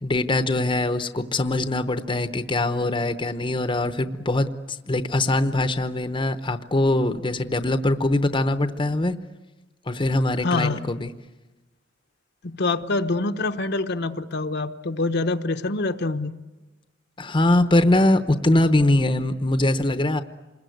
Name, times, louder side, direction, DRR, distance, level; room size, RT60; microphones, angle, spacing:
voice 1, 0.0-9.2 9.9-11.1 17.2-20.2, left 2 dB, 25° left, 10 dB, 0.8 m, -22 dB
voice 2, 10.4-10.8 12.4-16.3, left 3 dB, 60° left, 7 dB, 0.9 m, -25 dB
27.5 x 21.0 x 9.3 m, 1.2 s
head